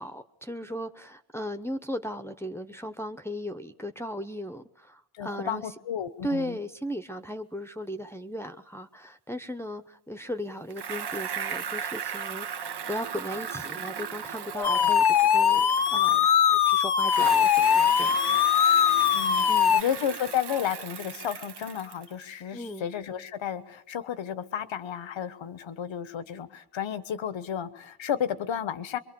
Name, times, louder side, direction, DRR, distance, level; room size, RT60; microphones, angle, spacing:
voice 1, 0.0-5.6 6.2-12.5 12.9-18.2 19.5-19.7 22.5-22.9, equal, 5° left, 6 dB, 0.9 m, -36 dB
voice 2, 5.2-6.6 14.5-14.9 19.1-19.5 19.7-29.0, left 9 dB, 90° left, 13 dB, 1.3 m, -32 dB
Bicycle, 10.7-16.6 17.0-22.2, right 7 dB, 60° right, 1.1 m, -37 dB
sound 1, 14.6-19.8, left 8 dB, 60° left, 0.9 m, -21 dB
24.5 x 23.5 x 6.9 m, 0.74 s
wide cardioid pair, 115°, 44 cm